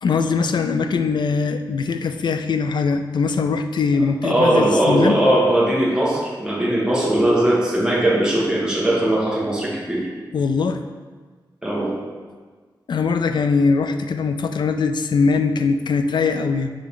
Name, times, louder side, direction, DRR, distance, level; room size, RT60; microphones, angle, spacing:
voice 1, 0.0-5.1 10.3-10.8 12.9-16.7, left 4 dB, 70° left, 8 dB, 0.4 m, -21 dB
voice 2, 4.2-10.0 11.6-12.0, right 1 dB, 10° right, -6 dB, 1.5 m, -19 dB
6.7 x 3.8 x 3.7 m, 1.5 s
wide cardioid pair, 130°, 8 cm